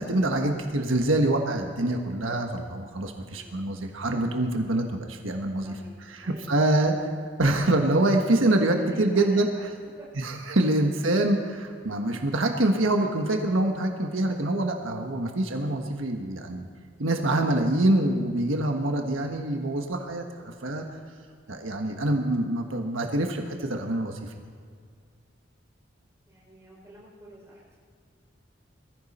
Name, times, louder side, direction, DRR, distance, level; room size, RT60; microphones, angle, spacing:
voice 1, 0.0-5.7 6.1-6.9 7.4-9.5 10.2-16.7 17.0-20.8 21.5-24.3, right 1 dB, 90° right, 3 dB, 1.4 m, -25 dB
voice 2, 3.3-3.7 5.6-6.8 8.9-9.6 10.0-10.2 26.3-27.8, equal, 15° right, -6 dB, 5.7 m, -49 dB
22.0 x 14.5 x 4.3 m, 2.1 s
head